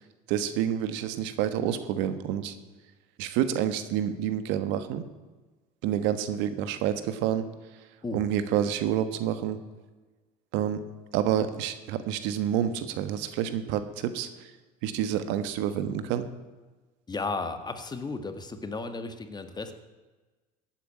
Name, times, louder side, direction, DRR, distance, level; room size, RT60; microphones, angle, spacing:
voice 1, 0.3-2.5 3.2-5.0 5.8-7.4 8.1-9.6 10.5-10.8 11.1-14.5 14.8-16.3, right 10 dB, 70° right, 11 dB, 1.3 m, -28 dB
voice 2, 17.1-19.7, left 3 dB, 20° left, 8 dB, 1.8 m, -34 dB
15.5 x 9.1 x 8.8 m, 1.2 s
supercardioid pair, 90°, 19 cm